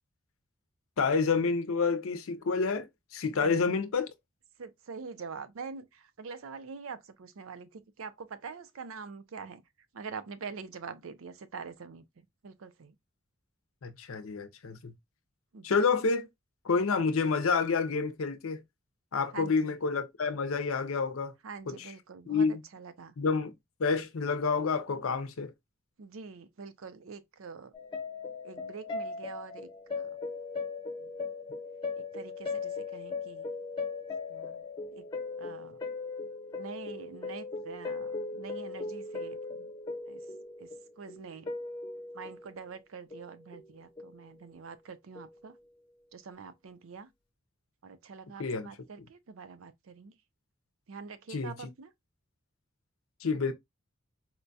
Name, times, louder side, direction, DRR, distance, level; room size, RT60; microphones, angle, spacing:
voice 1, 1.0-4.1 13.8-14.9 15.6-16.3 16.6-18.6 19.1-21.3 21.7-21.8 22.3-22.6 23.2-23.5 23.8-25.5 48.4-48.7 51.3-51.7 53.2-53.5, left 4 dB, 75° left, 0.6 m, -29 dB
voice 2, 4.6-9.6 9.9-12.9 15.5-15.8 19.3-19.8 21.4-23.1 26.0-27.7 28.4-30.2 31.0-31.1 32.0-33.5 34.3-35.0 35.4-35.8 36.5-39.7 40.1-40.2 40.6-41.5 42.1-45.6 46.1-47.1 47.8-50.2 50.9-51.9, right 5 dB, 70° right, 0.5 m, -45 dB
sound 1, 27.7-42.6 43.1-43.7 44.0-44.2 45.1-45.3, left 4 dB, 25° left, 0.9 m, -38 dB
4.3 x 2.2 x 2.6 m
head